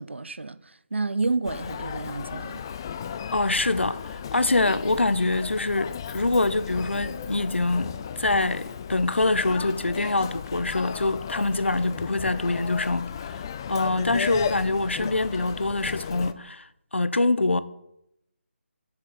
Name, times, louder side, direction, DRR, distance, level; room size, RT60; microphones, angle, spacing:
voice 1, 0.0-2.6, right 3 dB, 65° right, 0.6 m, -30 dB
Human voice, 1.4-16.3, left 7 dB, 20° left, 0.4 m, -35 dB
voice 2, 3.3-13.4 13.7-17.6, left 2 dB, 65° left, 0.8 m, -25 dB
7.5 x 7.5 x 7.8 m
figure-of-eight pair, 150°, 7 cm